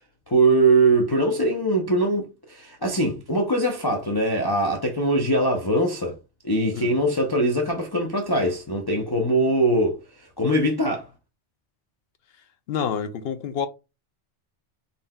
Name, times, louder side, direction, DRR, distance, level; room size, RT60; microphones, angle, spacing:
voice 1, 0.3-6.2 6.4-11.1, right 2 dB, 25° left, 0.5 m, -22 dB
voice 2, 12.7-13.7, left 7 dB, 65° left, 0.8 m, -28 dB
4.0 x 3.8 x 2.3 m
omnidirectional pair, 1.2 m